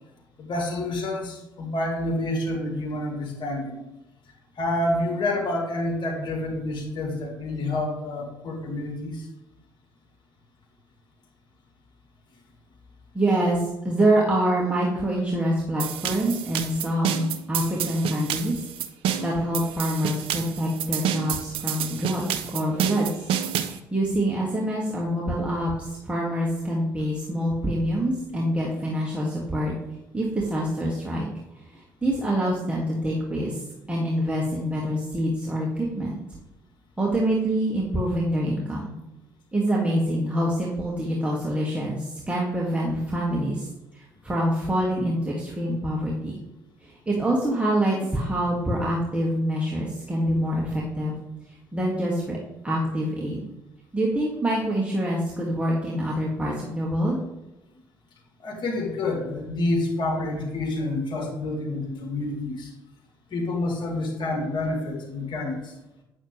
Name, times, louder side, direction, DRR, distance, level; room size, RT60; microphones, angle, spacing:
voice 1, 0.4-3.8 4.6-9.3 58.4-62.7 63.3-65.7, left 2 dB, 50° left, 0 dB, 2.2 m, -28 dB
voice 2, 13.1-18.6 19.2-22.2 22.5-23.3 23.6-29.7 30.1-31.3 31.7-33.6 33.9-36.2 37.0-38.9 39.5-43.7 43.9-46.3 46.8-51.2 51.7-52.4 52.6-53.4 53.9-57.2, right 1 dB, 10° right, -4 dB, 2.1 m, -25 dB
sound 1, 15.8-23.8, right 9 dB, 65° right, 0.6 m, -29 dB
8.9 x 7.1 x 3.3 m, 0.96 s
hypercardioid pair, 45°, 10 cm